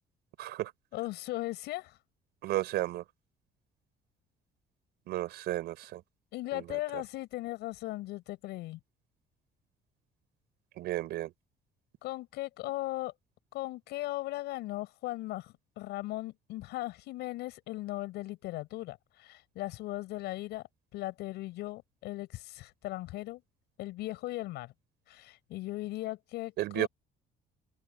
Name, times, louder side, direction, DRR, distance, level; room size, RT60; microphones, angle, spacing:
voice 1, 0.4-0.7 2.4-3.0 5.1-6.0 6.5-6.6 10.8-11.3 26.6-26.9, right 15 dB, 80° right, 5.0 m, -33 dB
voice 2, 0.9-2.0 6.3-8.8 12.0-13.1 13.5-20.6 20.9-23.4 23.8-24.7 25.1-26.9, left 17 dB, 85° left, 6.5 m, -38 dB
cardioid pair, 110°, 17 cm